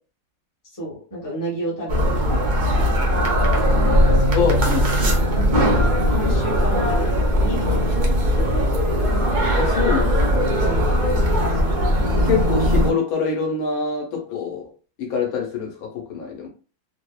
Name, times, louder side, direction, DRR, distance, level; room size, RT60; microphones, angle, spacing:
voice 1, 0.8-2.0 2.3-2.9 3.3-3.9 5.1-5.7 6.1-8.7 10.6-11.0 11.6-11.7, right 1 dB, 15° left, 0.8 m, -32 dB
sound 1, 1.9-12.9, equal, 90° right, 0.4 m, -19 dB
voice 2, 4.3-5.3 9.5-10.6 12.2-14.7 15.0-16.5, left 5 dB, 75° left, 1.2 m, -25 dB
2.8 x 2.0 x 2.2 m
omnidirectional pair, 1.6 m